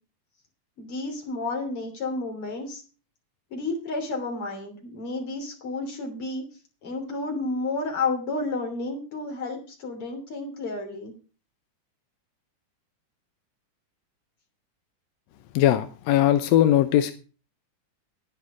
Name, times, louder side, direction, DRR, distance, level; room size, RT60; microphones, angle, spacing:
voice 1, 0.8-2.8 3.5-6.5 6.8-11.1, left 3 dB, 45° left, 1 dB, 3.8 m, -31 dB
voice 2, 15.6-17.1, left 12 dB, 75° left, 9 dB, 1.6 m, -20 dB
11.0 x 10.0 x 4.9 m, 0.36 s
omnidirectional pair, 3.7 m